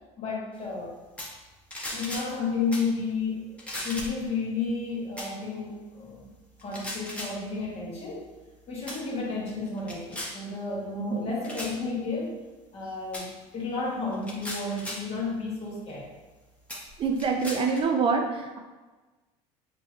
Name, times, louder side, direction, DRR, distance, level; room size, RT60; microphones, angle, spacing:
voice 1, 0.2-0.9 1.9-6.3 6.6-8.3 8.7-12.4 12.7-16.1, left 4 dB, 40° left, -3 dB, 1.4 m, -32 dB
sound 1, 1.2-1.4 1.7-2.3 2.7-2.9 3.6-4.2 5.2-5.3 6.6-7.4 8.2-8.5 8.9-9.0 9.5-10.4 11.4-11.8 13.1-13.3 14.1-15.1 15.9-16.0 16.7-17.8, left 1 dB, 10° left, 1.0 m, -37 dB
voice 2, 17.0-18.6, right 5 dB, 35° right, 3 dB, 0.4 m, -25 dB
5.6 x 3.2 x 2.4 m, 1.2 s
supercardioid pair, 110°, 15 cm